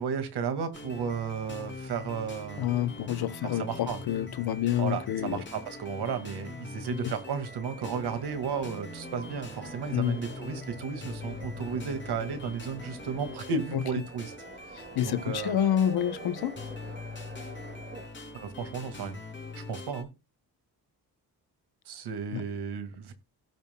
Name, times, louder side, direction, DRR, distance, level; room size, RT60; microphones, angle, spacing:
voice 1, 0.0-2.7 3.4-4.0 4.8-14.3 14.6-15.6 18.3-19.2 19.5-20.1 21.9-23.1, right 6 dB, 85° right, 2.0 m, -34 dB
sound 1, 0.7-20.0, left 3 dB, 30° left, 3.4 m, -43 dB
voice 2, 2.6-5.4 7.0-7.1 9.9-10.2 14.9-16.5 22.3-22.4, left 10 dB, 70° left, 0.9 m, -28 dB
sound 2, 7.2-18.1, right 3 dB, 30° right, 2.2 m, -47 dB
17.0 x 5.7 x 2.2 m
cardioid pair, 130°, 39 cm